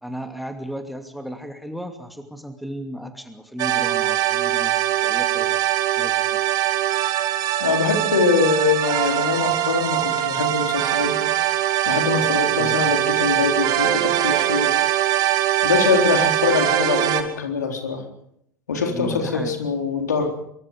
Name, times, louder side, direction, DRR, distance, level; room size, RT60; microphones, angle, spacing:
voice 1, 0.0-4.7 5.0-5.6 6.0-6.4 12.6-12.8 18.9-19.5, equal, ahead, 6 dB, 2.6 m, -34 dB
sound 1, 3.6-17.2, right 13 dB, 40° right, 2.2 m, -22 dB
voice 2, 7.6-11.3 11.9-14.8 15.6-18.0 18.7-20.4, left 4 dB, 70° left, 3 dB, 3.9 m, -23 dB
25.0 x 23.5 x 5.2 m, 0.74 s
figure-of-eight pair, 75°, 10 cm